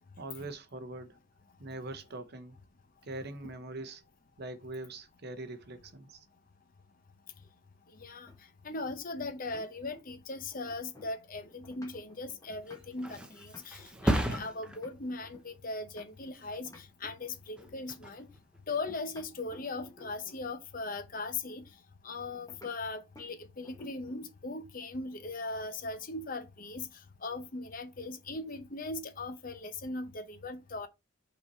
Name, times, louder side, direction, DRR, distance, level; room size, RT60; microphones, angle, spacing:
voice 1, 0.2-1.2 1.6-2.6 3.0-4.0 4.4-6.2, right 2 dB, 50° right, 0.9 m, -42 dB
voice 2, 7.9-8.3 8.6-18.3 18.7-21.7 22.0-30.9, left 3 dB, 40° left, 0.8 m, -39 dB
sound 1, 8.3-10.2 10.5-16.3 16.7-17.8 18.7-20.5 22.5-22.7 23.2-23.3 23.6-24.3, left 2 dB, 15° left, 1.5 m, -56 dB
Thump thud, 12.5-19.9 20.3-20.8, equal, 5° right, 0.8 m, -37 dB
5.7 x 4.1 x 4.3 m
head